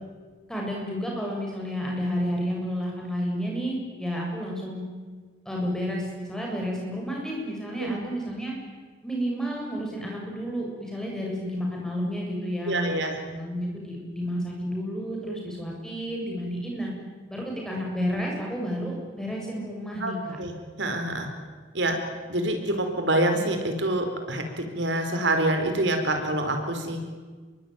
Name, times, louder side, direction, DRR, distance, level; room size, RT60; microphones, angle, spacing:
voice 1, 0.5-4.8 5.5-8.5 9.0-16.9 17.3-20.4, equal, 5° left, -2 dB, 7.4 m, -31 dB
voice 2, 12.6-13.2 20.0-21.3 21.7-22.0 22.3-27.0, right 1 dB, 85° right, 5 dB, 4.4 m, -26 dB
27.0 x 23.0 x 9.4 m, 1.5 s
head